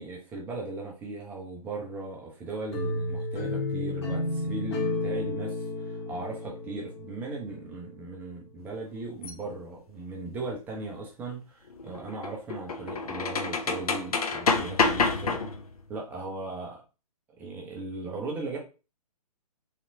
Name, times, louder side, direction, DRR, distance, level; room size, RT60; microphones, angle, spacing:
voice 1, 0.0-15.4 15.9-16.8 17.4-18.6, right 3 dB, 10° right, -1 dB, 0.5 m, -38 dB
sound 1, 2.7-7.6, left 2 dB, 45° left, 1.2 m, -32 dB
metal bender creaks clacks bending creaks squeaks bright, 9.2-9.3 11.7-15.8, left 4 dB, 65° left, 0.6 m, -28 dB
3.3 x 2.8 x 2.6 m, 0.32 s
figure-of-eight pair, 130°, 20 cm